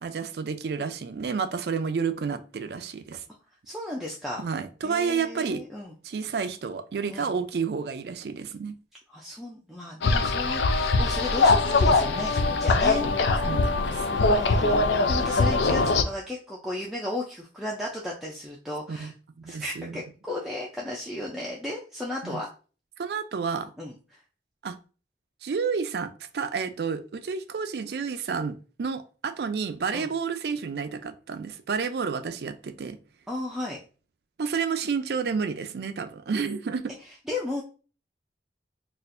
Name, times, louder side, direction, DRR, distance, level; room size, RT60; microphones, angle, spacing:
voice 1, 0.0-3.2 4.4-5.6 6.0-8.8 13.4-14.2 18.9-19.1 19.4-20.0 22.2-22.4 23.0-23.7 24.6-24.8 25.4-33.0 34.4-36.9, right 5 dB, 70° right, 0.4 m, -30 dB
voice 2, 3.7-4.4 4.8-6.0 7.1-7.3 9.1-13.1 14.1-19.1 19.5-22.5 23.8-24.2 29.9-30.1 33.3-33.8 37.3-37.6, left 1 dB, ahead, 0.4 m, -34 dB
sound 1, 10.0-16.0, left 3 dB, 85° left, 0.4 m, -22 dB
4.2 x 2.4 x 2.5 m
head